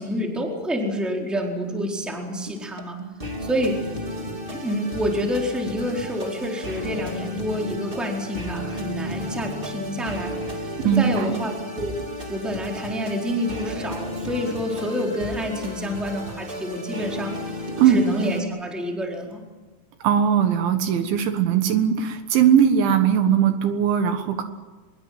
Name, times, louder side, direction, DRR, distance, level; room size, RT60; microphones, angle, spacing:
voice 1, 0.0-3.8 4.5-12.0 12.3-17.3 17.9-19.4, equal, ahead, 0 dB, 3.5 m, -28 dB
sound 1, 2.5-18.4, left 1 dB, 40° right, 0.7 m, -33 dB
voice 2, 10.8-11.4 17.8-18.0 20.0-24.4, right 8 dB, 75° right, 7 dB, 3.6 m, -19 dB
25.5 x 22.5 x 7.8 m, 1.3 s
omnidirectional pair, 5.7 m